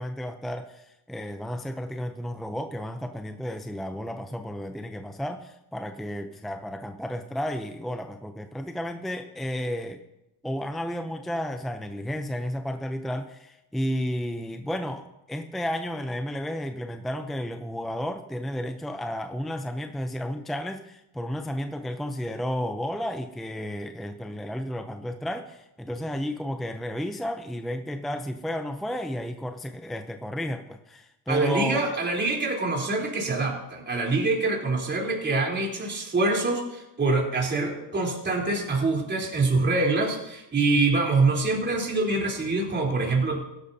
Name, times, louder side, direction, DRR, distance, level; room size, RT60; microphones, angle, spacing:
voice 1, 0.0-10.0 10.4-31.8, equal, ahead, 7 dB, 0.6 m, -32 dB
voice 2, 31.3-43.4, right 3 dB, 25° right, -1 dB, 3.7 m, -25 dB
16.0 x 12.0 x 2.8 m, 0.90 s
cardioid pair, 100°, 42 cm